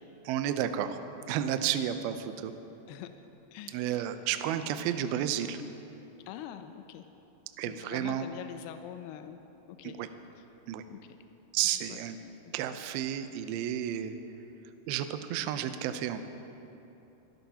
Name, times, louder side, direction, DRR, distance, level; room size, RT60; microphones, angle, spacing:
voice 1, 0.3-1.0 1.3-2.5 3.7-5.6 7.6-8.3 9.8-10.1 10.7-10.8 11.5-12.2 12.5-14.2 14.9-16.2, right 10 dB, 85° right, 9 dB, 2.2 m, -31 dB
voice 2, 3.5-4.1 6.3-7.1 7.7-9.4 9.7-10.0 10.9-11.0 11.6-12.0 12.4-12.8, left 11 dB, 85° left, 8 dB, 2.2 m, -44 dB
24.0 x 13.0 x 2.8 m, 3.0 s
omnidirectional pair, 5.1 m